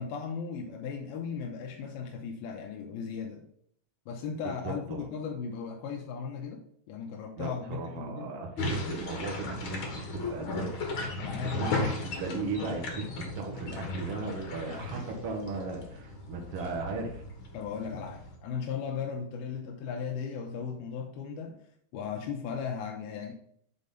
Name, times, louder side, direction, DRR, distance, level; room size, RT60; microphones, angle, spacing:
voice 1, 0.0-3.5 4.1-6.6 6.9-8.3 11.0-11.6 17.5-21.6 21.9-23.3, left 6 dB, 85° left, 1 dB, 2.7 m, -37 dB
voice 2, 4.6-5.0 7.4-10.7 11.6-17.2, right 3 dB, 70° right, 1 dB, 1.4 m, -37 dB
sound 1, 8.6-18.4, left 2 dB, 55° left, 1.5 m, -36 dB
7.0 x 4.2 x 5.3 m, 0.68 s
omnidirectional pair, 4.3 m